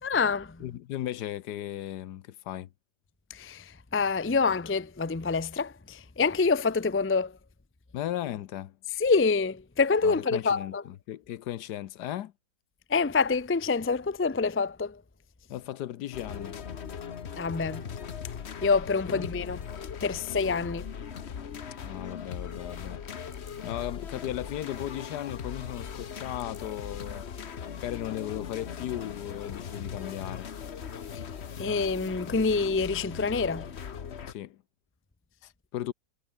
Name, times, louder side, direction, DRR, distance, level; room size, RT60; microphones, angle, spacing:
voice 1, 0.0-0.6 3.3-7.4 9.0-10.8 12.9-15.0 17.4-17.9 18.6-19.6 20.0-20.9 31.6-33.7, left 4 dB, 20° left, 0.3 m, -26 dB
voice 2, 0.6-2.7 7.9-8.8 10.0-10.7 11.1-12.3 15.5-16.6 19.1-19.3 21.8-23.0 23.6-27.2 27.8-30.5 34.3-34.6 35.4-35.9, left 12 dB, 75° left, 1.3 m, -36 dB
sound 1, 16.1-34.3, left 7 dB, 45° left, 1.2 m, -39 dB
omnidirectional pair, 1.8 m